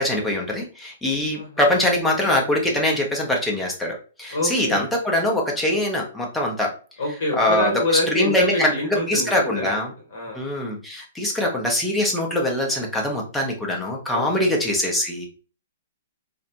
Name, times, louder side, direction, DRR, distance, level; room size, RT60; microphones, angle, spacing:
voice 1, 0.0-6.7 7.4-7.7 8.1-8.7 9.1-9.9 10.3-15.3, left 1 dB, 5° left, -1 dB, 0.7 m, -23 dB
voice 2, 1.3-1.8 4.3-4.9 7.0-9.7 10.1-10.4 14.1-14.5, left 1 dB, 55° left, 0 dB, 0.9 m, -26 dB
2.5 x 2.0 x 2.8 m, 0.38 s
figure-of-eight pair, 115°, 0 cm